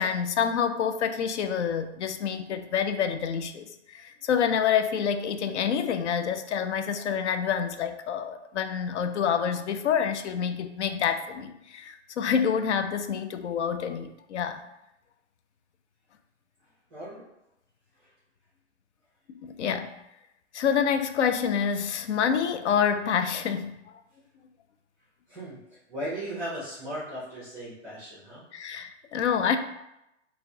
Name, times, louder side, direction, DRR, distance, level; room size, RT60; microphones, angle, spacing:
voice 1, 0.0-14.6 19.3-20.0 20.5-23.8 28.5-29.6, left 7 dB, 65° left, 9 dB, 0.5 m, -27 dB
voice 2, 16.9-17.2 18.0-18.1 25.3-25.6 25.9-28.4, right 1 dB, 5° right, -11 dB, 0.8 m, -37 dB
4.2 x 2.2 x 2.6 m, 0.87 s
hypercardioid pair, 165°, 37 cm